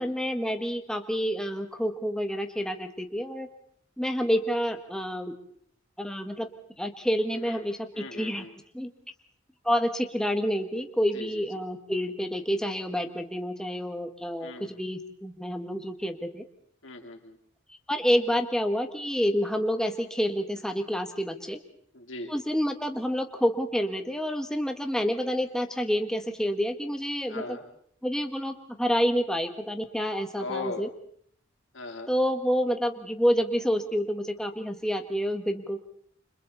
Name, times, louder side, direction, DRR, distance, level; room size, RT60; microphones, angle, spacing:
voice 1, 0.0-3.5 4.0-5.3 6.0-6.5 6.8-8.5 8.7-8.9 9.6-16.4 17.9-21.6 22.3-27.6 28.0-30.9 32.1-35.8, equal, 5° left, 5 dB, 1.6 m, -28 dB
voice 2, 7.9-8.5 11.1-11.4 14.4-14.7 16.8-17.4 21.9-22.3 27.3-27.6 30.4-30.8 31.7-32.1, left 3 dB, 85° left, 3 dB, 3.4 m, -38 dB
29.0 x 26.5 x 4.1 m, 0.64 s
head